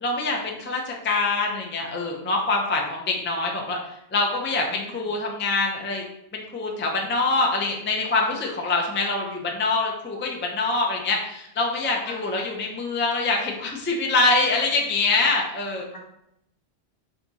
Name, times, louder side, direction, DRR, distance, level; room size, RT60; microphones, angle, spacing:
voice 1, 0.0-3.8 4.1-6.0 6.3-15.9, left 3 dB, 20° left, 0 dB, 0.3 m, -25 dB
voice 2, 4.7-5.0 12.0-12.3 15.9-16.0, equal, 75° left, -2 dB, 1.2 m, -41 dB
3.5 x 2.7 x 4.0 m, 0.80 s
omnidirectional pair, 1.1 m